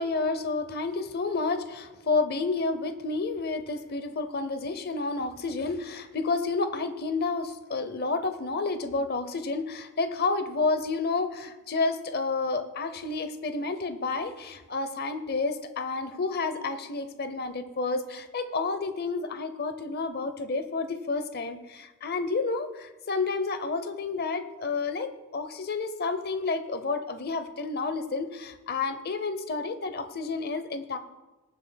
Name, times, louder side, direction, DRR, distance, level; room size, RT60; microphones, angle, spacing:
voice 1, 0.0-31.0, left 3 dB, 50° left, 10 dB, 0.7 m, -30 dB
21.5 x 7.4 x 2.3 m, 1.1 s
head